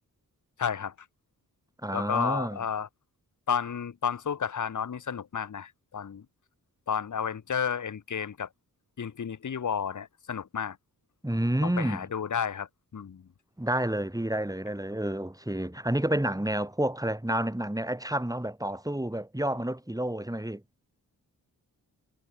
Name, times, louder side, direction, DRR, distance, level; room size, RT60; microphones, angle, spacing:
voice 1, 0.6-0.9 1.9-2.9 3.5-6.2 6.9-8.5 9.0-10.8 11.6-12.7 12.9-13.2, left 7 dB, 50° left, 1.4 m, -31 dB
voice 2, 1.8-2.6 11.2-12.1 13.6-20.6, right 1 dB, 10° right, 6.4 m, -29 dB
cardioid pair, 50°, 37 cm